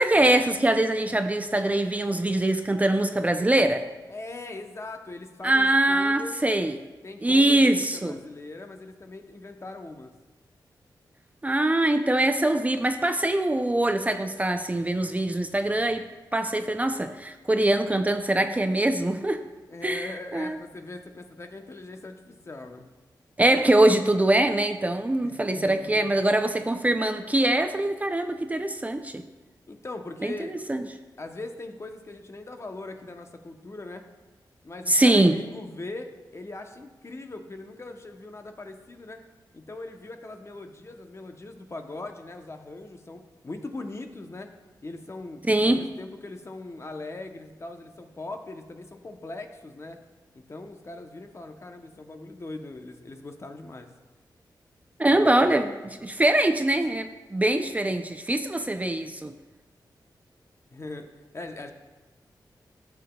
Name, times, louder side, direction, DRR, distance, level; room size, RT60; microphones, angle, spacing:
voice 1, 0.0-3.8 5.4-6.8 7.2-8.2 11.4-16.0 16.3-19.4 19.8-20.6 23.4-29.2 30.2-30.9 34.9-35.4 45.5-45.8 55.0-59.3, right 1 dB, 20° right, 7 dB, 0.5 m, -23 dB
voice 2, 4.1-6.4 7.0-10.1 19.7-22.9 25.2-26.0 29.7-30.6 31.2-34.1 34.6-39.2 39.5-44.5 44.8-50.0 50.3-53.9 60.7-61.1 61.3-61.7, left 2 dB, 35° left, 5 dB, 0.8 m, -40 dB
13.0 x 6.7 x 2.3 m, 1.2 s
cardioid pair, 70°, 8 cm